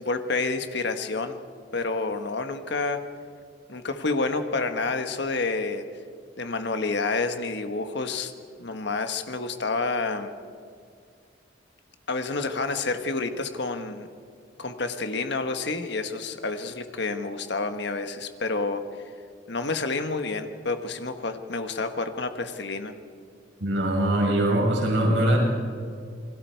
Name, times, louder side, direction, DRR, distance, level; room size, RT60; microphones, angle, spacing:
voice 1, 0.0-1.4 1.7-3.0 3.7-5.8 6.4-8.3 8.6-10.3 12.1-14.1 14.6-18.8 19.5-22.9, left 3 dB, 60° left, 7 dB, 1.4 m, -29 dB
voice 2, 23.6-25.4, right 1 dB, 75° right, -2 dB, 6.6 m, -22 dB
28.0 x 21.0 x 4.6 m, 2.2 s
head